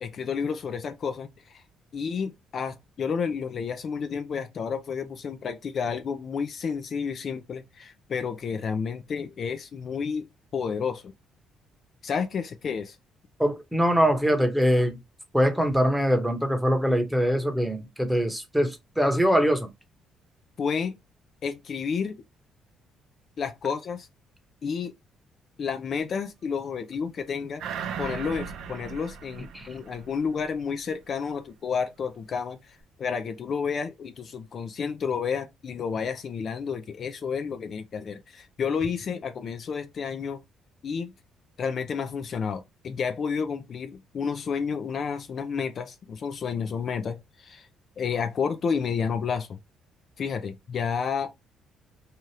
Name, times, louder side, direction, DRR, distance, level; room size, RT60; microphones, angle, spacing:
voice 1, 0.0-1.6 1.9-10.3 10.5-11.1 12.0-13.0 20.6-21.0 21.4-22.2 23.4-24.1 24.6-24.9 25.6-27.6 28.0-40.4 40.8-41.1 41.6-47.7 48.0-49.6 50.2-51.3, left 6 dB, 50° left, 0.4 m, -31 dB
voice 2, 13.4-15.0 15.3-19.7 29.5-29.7, equal, 5° right, 0.9 m, -23 dB
sound 1, 27.6-30.5 30.9-31.0, right 7 dB, 75° right, 0.5 m, -37 dB
2.8 x 2.3 x 3.2 m
cardioid pair, 85°, 0 cm